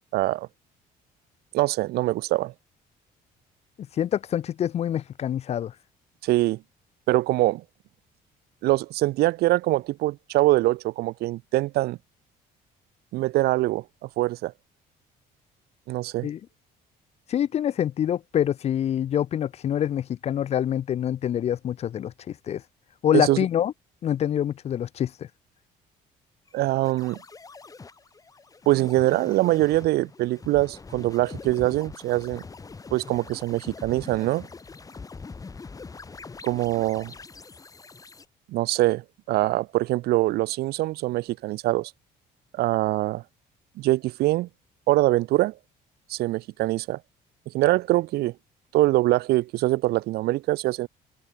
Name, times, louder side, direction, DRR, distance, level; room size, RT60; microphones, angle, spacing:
voice 1, 0.1-0.5 1.5-2.5 6.2-6.6 7.1-7.6 8.6-12.0 13.1-14.5 15.9-16.3 23.1-23.4 26.5-27.2 28.7-32.4 32.9-34.5 36.4-37.1 38.5-41.9 42.5-43.2 43.8-44.5 44.9-45.5 46.1-47.0 47.5-48.3 48.7-50.9, right 17 dB, 70° right, 0.4 m, -23 dB
voice 2, 4.0-5.7 16.2-16.4 17.3-22.6 23.0-23.7 24.0-25.3, left 10 dB, 40° left, 0.4 m, -26 dB
sound 1, 26.5-38.3, left 4 dB, 20° left, 1.1 m, -43 dB
cardioid pair, 110°, 17 cm